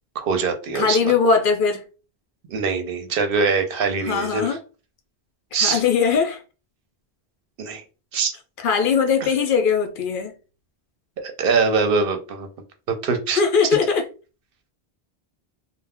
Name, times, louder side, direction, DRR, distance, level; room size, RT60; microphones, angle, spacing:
voice 1, 0.1-1.1 2.5-4.6 5.5-5.8 7.6-7.8 8.1-8.3 11.2-12.5 12.9-13.4, right 4 dB, 65° right, 0.8 m, -23 dB
voice 2, 0.7-1.8 4.0-4.6 5.6-6.4 8.6-10.3 13.3-14.1, left 6 dB, 65° left, 0.7 m, -20 dB
2.2 x 2.1 x 3.4 m
omnidirectional pair, 1.0 m